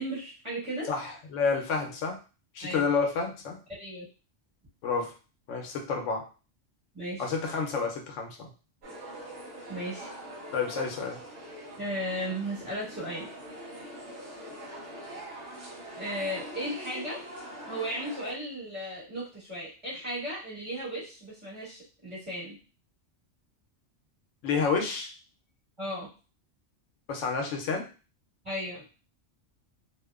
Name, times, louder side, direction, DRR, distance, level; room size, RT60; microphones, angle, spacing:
voice 1, 0.0-0.9 2.6-2.8 3.7-4.0 6.9-7.3 9.7-10.1 11.8-13.3 16.0-17.2 17.7-22.6 25.8-26.1 28.4-28.8, equal, 25° right, -8 dB, 1.5 m, -35 dB
voice 2, 0.9-2.2 2.5-3.6 4.8-5.1 5.5-6.2 7.2-8.5 10.5-11.2 24.4-25.1 27.1-27.9, left 5 dB, 80° left, 2 dB, 0.9 m, -29 dB
sound 1, 8.8-18.3, right 1 dB, 75° right, 1.0 m, -43 dB
2.7 x 2.1 x 2.3 m, 0.35 s
omnidirectional pair, 1.3 m